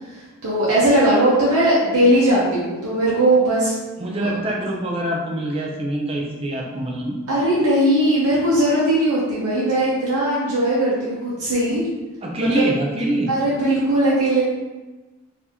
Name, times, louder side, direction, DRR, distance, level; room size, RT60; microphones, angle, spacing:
voice 1, 0.1-3.7 4.0-4.4 7.3-11.8 12.4-12.7 13.3-14.4, right 1 dB, 80° right, -7 dB, 0.8 m, -19 dB
voice 2, 4.0-7.1 12.2-13.3, right 1 dB, 25° right, -1 dB, 0.5 m, -24 dB
4.2 x 2.7 x 2.9 m, 1.2 s
head